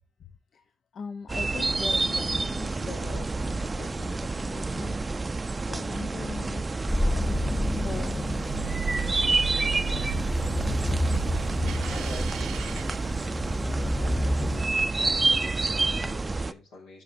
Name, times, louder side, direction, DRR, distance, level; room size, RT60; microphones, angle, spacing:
voice 1, 0.9-5.0 5.6-7.3 7.8-10.7, left 5 dB, 60° left, 9 dB, 0.5 m, -41 dB
sound 1, 1.3-16.5, right 3 dB, 30° right, 0.4 m, -29 dB
sound 2, 6.9-14.6, left 1 dB, 20° left, 0.8 m, -30 dB
sound 3, 8.5-13.8, right 7 dB, 80° right, 0.6 m, -36 dB
voice 2, 11.9-17.0, left 2 dB, 85° left, -1 dB, 1.9 m, -45 dB
12.5 x 4.6 x 2.6 m, 0.32 s
supercardioid pair, 50°, 0 cm